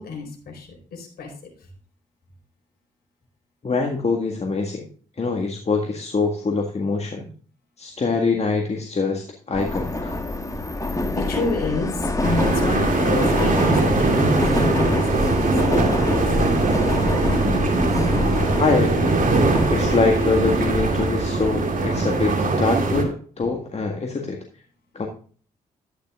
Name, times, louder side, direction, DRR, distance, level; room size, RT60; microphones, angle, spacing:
voice 1, 0.0-1.3 1.6-1.7 11.1-14.4 14.7-16.9, left 3 dB, 55° left, 2 dB, 4.4 m, -29 dB
voice 2, 3.6-4.9 5.2-7.3 7.8-10.2 18.6-19.2 19.7-24.4 24.9-25.1, left 4 dB, 35° left, 2 dB, 1.7 m, -24 dB
Subway metro underground, 9.5-21.6, left 2 dB, 15° left, 1.7 m, -26 dB
sound 1, 12.2-23.0, right 3 dB, 45° right, 2.5 m, -21 dB
12.0 x 10.0 x 2.4 m, 0.43 s
hypercardioid pair, 45°, 19 cm